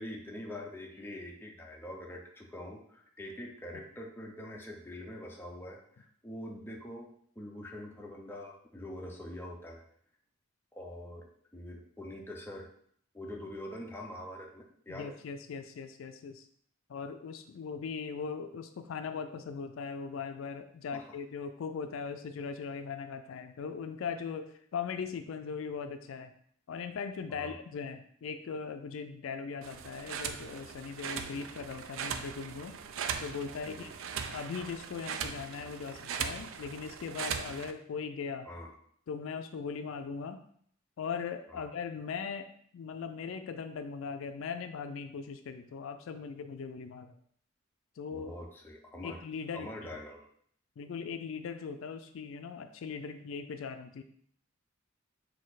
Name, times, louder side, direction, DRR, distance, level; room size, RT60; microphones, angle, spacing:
voice 1, 0.0-7.1 7.4-9.8 10.7-12.7 13.1-15.2 20.9-21.0 27.3-27.6 33.6-33.9 38.4-38.7 41.5-41.6 48.1-49.2 49.5-50.2, left 1 dB, 10° left, 0 dB, 0.5 m, -44 dB
voice 2, 14.9-16.5 16.9-26.3 26.7-32.8 33.2-33.9 34.3-38.5 39.1-40.4 41.0-47.2 48.0-48.3 49.0-49.7 50.8-54.0, left 5 dB, 75° left, 8 dB, 0.4 m, -39 dB
sound 1, 29.6-37.7, right 7 dB, 75° right, 0.4 m, -39 dB
4.2 x 2.7 x 3.9 m, 0.63 s
head